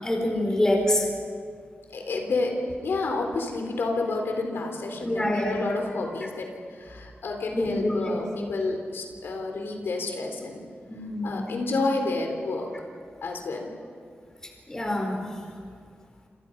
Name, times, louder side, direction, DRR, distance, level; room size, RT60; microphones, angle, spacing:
voice 1, 0.0-1.1 5.0-5.6 7.5-8.2 10.9-11.5 14.7-15.2, left 1 dB, 15° left, 1 dB, 4.7 m, -26 dB
voice 2, 1.9-10.6 11.2-12.7 13.2-13.7, left 3 dB, 80° left, 3 dB, 3.8 m, -30 dB
29.0 x 27.5 x 5.4 m, 2.1 s
wide cardioid pair, 175°, 4 cm